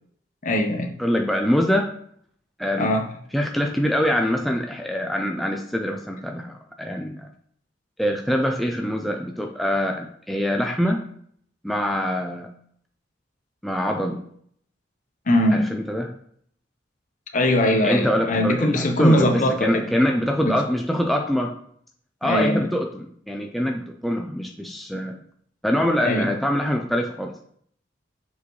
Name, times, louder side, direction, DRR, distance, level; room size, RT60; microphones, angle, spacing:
voice 1, 0.4-0.9 2.8-3.1 15.3-15.7 17.3-19.8 20.4-20.6 22.2-22.7 25.7-26.3, left 1 dB, 45° left, 4 dB, 0.9 m, -21 dB
voice 2, 1.0-1.9 2.6-2.9 3.3-7.3 8.0-11.0 11.6-12.5 13.6-14.2 15.5-16.1 17.8-21.5 22.2-25.2 25.6-27.3, equal, ahead, 1 dB, 0.4 m, -24 dB
6.7 x 5.1 x 3.2 m, 0.64 s
head